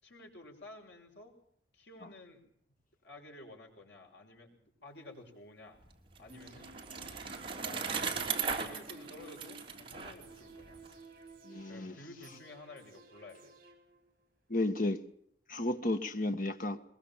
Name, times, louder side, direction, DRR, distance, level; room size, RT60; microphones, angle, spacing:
voice 1, 0.0-1.3 1.7-2.4 3.0-5.8 6.2-6.7 7.6-10.8 11.7-13.5, left 2 dB, 80° left, 6.5 m, -52 dB
Bicycle, 5.9-10.9, right 5 dB, 30° right, 3.3 m, -38 dB
sound 1, 6.3-14.3 14.6-14.7, right 2 dB, 55° right, 5.3 m, -55 dB
voice 2, 11.4-11.9 14.5-15.0 15.5-16.8, left 2 dB, 50° left, 1.6 m, -32 dB
22.0 x 22.0 x 7.4 m
head